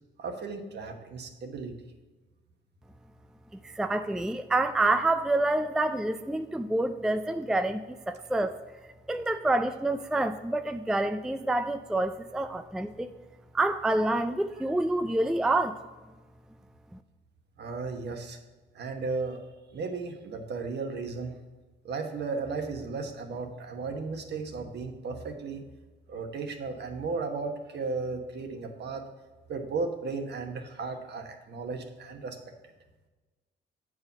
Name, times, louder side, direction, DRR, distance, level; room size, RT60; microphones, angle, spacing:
voice 1, 0.2-1.7 14.6-14.7 17.6-18.4 18.7-19.4 19.7-21.3 21.8-25.6 26.1-29.0 29.5-32.4, right 4 dB, 60° right, 5 dB, 1.2 m, -35 dB
voice 2, 3.6-8.5 9.1-13.1 13.5-15.8, right 2 dB, 5° right, 9 dB, 0.4 m, -27 dB
7.8 x 4.9 x 5.6 m, 1.2 s
cardioid pair, 90°, 20 cm